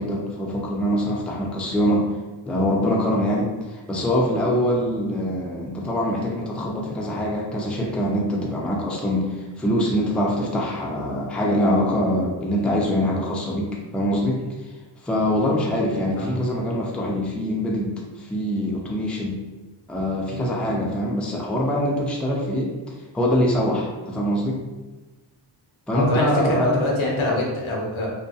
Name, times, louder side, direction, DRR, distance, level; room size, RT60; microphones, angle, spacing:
voice 1, 0.0-2.1 2.5-14.4 15.0-19.4 19.9-22.7 23.1-24.6 25.9-26.7, equal, 5° left, -2 dB, 0.4 m, -24 dB
voice 2, 15.9-16.4 25.9-28.1, left 1 dB, 80° left, -2 dB, 0.8 m, -24 dB
2.7 x 2.3 x 2.3 m, 1.2 s
wide cardioid pair, 65°, 47 cm